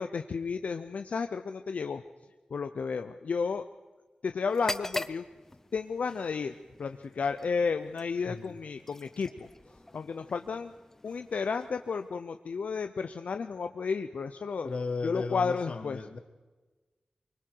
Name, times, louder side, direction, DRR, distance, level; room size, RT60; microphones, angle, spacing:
voice 1, 0.0-2.0 2.5-3.7 4.2-5.2 5.7-9.5 9.9-10.7 11.0-14.7 15.0-16.0, left 5 dB, 70° left, 8 dB, 0.7 m, -32 dB
sound 1, 4.5-12.3, left 2 dB, 15° left, 0.6 m, -43 dB
voice 2, 14.6-16.2, left 4 dB, 50° left, 9 dB, 1.4 m, -35 dB
24.5 x 23.5 x 4.7 m, 1.3 s
wide cardioid pair, 145°, 3 cm